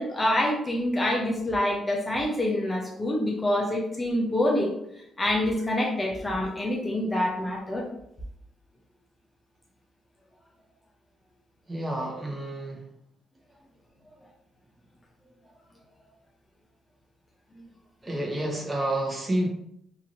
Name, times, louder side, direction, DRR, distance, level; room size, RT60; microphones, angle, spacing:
voice 1, 0.0-4.7 5.2-7.9, left 1 dB, 20° left, -1 dB, 0.6 m, -26 dB
voice 2, 11.7-12.8 18.0-19.5, right 1 dB, 20° right, -2 dB, 0.9 m, -29 dB
3.0 x 2.7 x 2.6 m, 0.76 s
cardioid pair, 90°, 0 cm